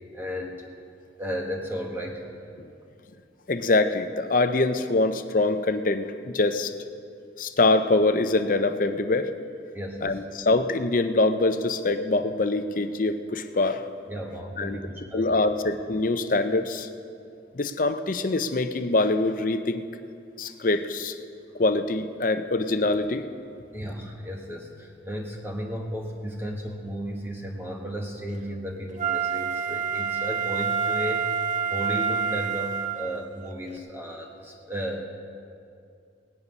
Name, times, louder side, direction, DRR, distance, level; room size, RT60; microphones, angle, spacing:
voice 1, 0.1-0.5 1.2-2.3 9.7-10.1 14.1-15.3 23.7-35.0, equal, 10° right, 0 dB, 1.1 m, -34 dB
voice 2, 3.5-6.7 7.4-9.3 10.0-13.8 14.6-14.8 15.1-16.9 17.5-19.8 20.4-21.1 21.6-23.2, left 2 dB, 50° left, 9 dB, 0.6 m, -24 dB
Wind instrument woodwind instrument, 29.0-33.3 33.8-33.9, right 7 dB, 45° right, 0.5 m, -27 dB
18.0 x 9.8 x 5.4 m, 2.5 s
head